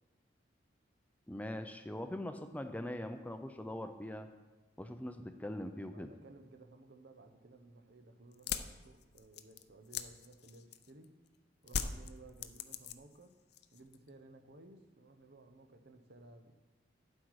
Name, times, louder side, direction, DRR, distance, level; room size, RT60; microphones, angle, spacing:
voice 1, 1.3-4.3 4.8-6.1, left 1 dB, 10° left, 8 dB, 0.5 m, -42 dB
voice 2, 5.9-11.2 11.6-13.4 13.7-16.5, right 2 dB, 60° right, 7 dB, 0.9 m, -57 dB
sound 1, 8.3-11.0 11.7-13.2 13.5-14.1, left 7 dB, 60° left, 0.5 m, -40 dB
9.9 x 7.8 x 4.8 m, 1.2 s
head